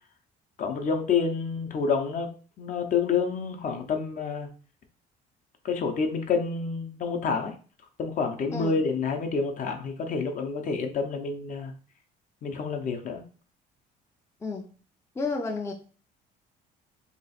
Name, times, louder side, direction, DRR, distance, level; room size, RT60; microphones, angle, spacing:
voice 1, 0.6-2.3 2.6-4.5 5.6-7.6 8.0-11.7 12.4-13.2, left 5 dB, 50° left, 0.7 m, -28 dB
voice 2, 15.2-15.7, left 3 dB, 15° left, 0.5 m, -31 dB
3.0 x 2.4 x 4.1 m
cardioid pair, 110°, 17 cm